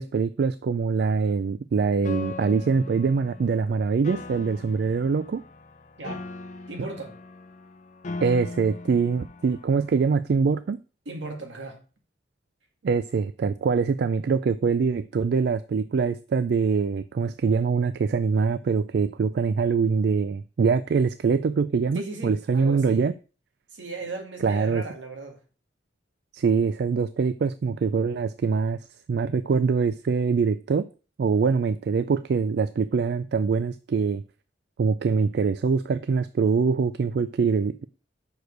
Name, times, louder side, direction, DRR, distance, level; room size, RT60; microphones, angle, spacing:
voice 1, 0.0-5.4 8.2-10.8 12.8-23.1 24.4-24.8 26.3-30.9 31.2-34.2 34.8-37.8, right 5 dB, 60° right, 0.3 m, -24 dB
Piano, 2.0-10.0, left 3 dB, 40° left, 0.6 m, -40 dB
voice 2, 6.7-7.2 11.0-11.8 21.9-23.0 23.7-25.4, right 2 dB, 75° right, 1.8 m, -36 dB
6.2 x 5.0 x 6.5 m
head